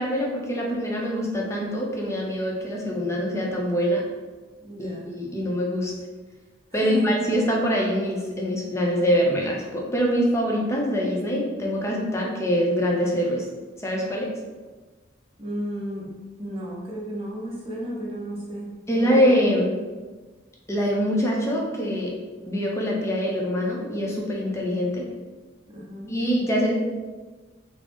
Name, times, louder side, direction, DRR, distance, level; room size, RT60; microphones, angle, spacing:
voice 1, 0.0-4.0 4.8-5.9 6.7-13.4 13.8-14.3 18.9-19.7 20.7-22.1 22.5-25.0 26.1-26.7, equal, 15° left, -2 dB, 0.6 m, -24 dB
voice 2, 4.6-5.1 6.8-7.1 15.4-16.1 16.4-19.3 25.7-26.1, equal, 30° right, -5 dB, 0.9 m, -33 dB
3.7 x 2.0 x 3.5 m, 1.3 s
head